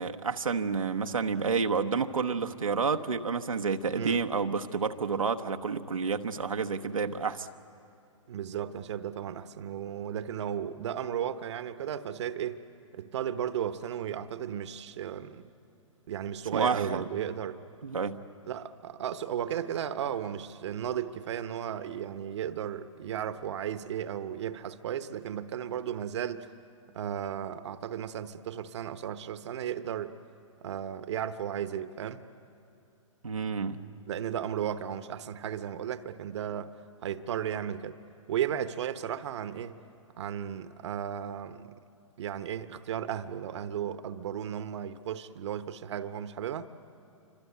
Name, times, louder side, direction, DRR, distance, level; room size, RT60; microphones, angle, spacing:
voice 1, 0.0-7.5 16.5-17.0 17.8-18.3 33.2-33.9, right 5 dB, 90° right, 5 dB, 1.0 m, -29 dB
voice 2, 8.3-12.6 12.9-15.5 16.1-17.6 18.4-26.5 26.9-30.2 30.6-32.2 34.0-36.7 37.0-38.0 38.3-39.8 40.2-41.7 42.2-46.7, right 9 dB, 60° right, 12 dB, 1.1 m, -35 dB
28.0 x 25.5 x 8.3 m, 2.6 s
hypercardioid pair, 120°, 17 cm